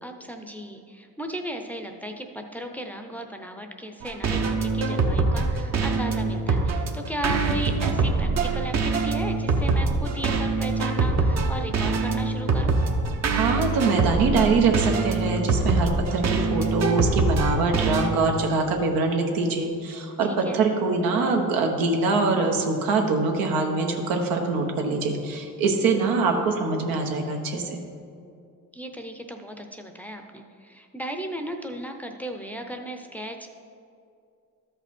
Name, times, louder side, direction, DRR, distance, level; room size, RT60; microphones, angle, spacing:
voice 1, 0.0-12.7 20.2-20.6 26.0-26.3 28.7-33.5, equal, 5° left, 4 dB, 0.6 m, -36 dB
sound 1, 4.0-18.1, right 3 dB, 50° right, 0.9 m, -24 dB
voice 2, 13.3-27.8, right 3 dB, 85° right, 3 dB, 1.2 m, -24 dB
12.5 x 5.4 x 4.3 m, 2.4 s
cardioid pair, 105°, 33 cm